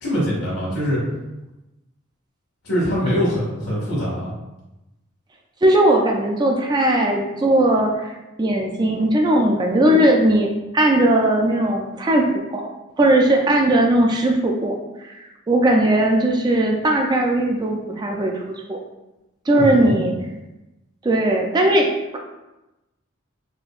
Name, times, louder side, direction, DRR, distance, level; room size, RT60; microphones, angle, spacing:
voice 1, 0.0-1.0 2.6-4.3 19.5-20.0, equal, 70° left, -9 dB, 1.3 m, -23 dB
voice 2, 5.6-8.1 8.4-12.3 12.5-12.7 13.0-14.8 15.0-18.8 19.5-20.1 21.0-21.9, right 1 dB, 20° right, 2 dB, 0.3 m, -18 dB
4.2 x 2.6 x 2.3 m, 0.99 s
head